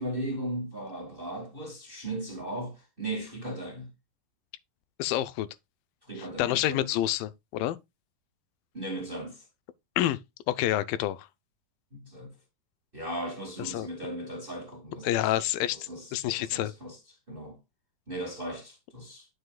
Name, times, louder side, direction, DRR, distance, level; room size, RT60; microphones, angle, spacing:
voice 1, 0.0-3.9 6.0-6.9 8.7-9.4 11.9-12.3 12.9-15.3 15.7-17.0 17.3-17.6 18.1-19.3, right 1 dB, 20° right, 1.4 m, -37 dB
voice 2, 5.0-5.5 6.2-7.8 10.0-10.2 10.5-11.3 13.7-13.9 15.0-16.7, left 13 dB, 85° left, 2.4 m, -28 dB
9.7 x 6.9 x 2.3 m
omnidirectional pair, 4.1 m